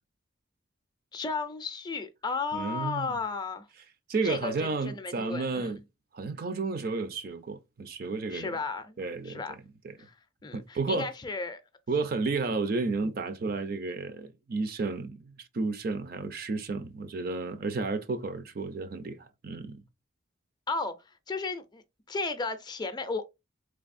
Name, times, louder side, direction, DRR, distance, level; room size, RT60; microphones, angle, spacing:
voice 1, 1.1-3.7 4.2-5.7 8.3-9.0 9.2-9.6 10.0-10.1 10.4-11.6 20.7-20.9 21.3-21.8 22.1-23.2, left 4 dB, 20° left, 0.4 m, -34 dB
voice 2, 2.5-3.1 4.1-5.8 6.1-8.6 9.0-9.9 10.5-11.1 11.9-19.8, right 3 dB, 50° right, 0.5 m, -32 dB
3.8 x 3.4 x 2.5 m
head